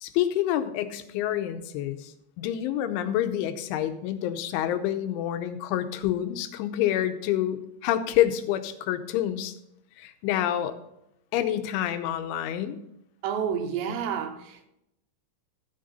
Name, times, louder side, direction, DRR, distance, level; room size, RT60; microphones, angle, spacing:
voice 1, 0.0-2.1 2.4-9.5 10.0-10.7 11.3-12.8, left 11 dB, 90° left, 3.2 m, -27 dB
voice 2, 13.2-14.7, right 7 dB, 80° right, 3.0 m, -30 dB
13.5 x 6.6 x 4.1 m
omnidirectional pair, 5.3 m